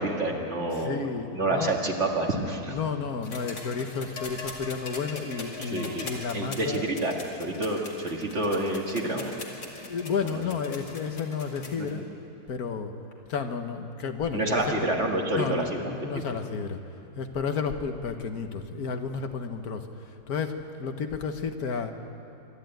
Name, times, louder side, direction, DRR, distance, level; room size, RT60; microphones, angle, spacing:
voice 1, 0.0-1.1 1.3-2.8 5.6-6.0 6.3-7.1 7.4-9.3 10.3-10.4 11.8-12.0 14.3-16.2, right 2 dB, 45° right, 1 dB, 2.2 m, -28 dB
voice 2, 0.8-1.8 2.7-6.9 9.8-12.1 12.5-12.9 13.3-14.9 15.3-16.8 17.2-21.9, left 5 dB, 70° left, 7 dB, 1.5 m, -32 dB
sound 1, 3.2-11.9 13.1-13.2, left 3 dB, 90° left, 3.0 m, -41 dB
25.5 x 12.0 x 9.1 m, 2.8 s
omnidirectional pair, 1.7 m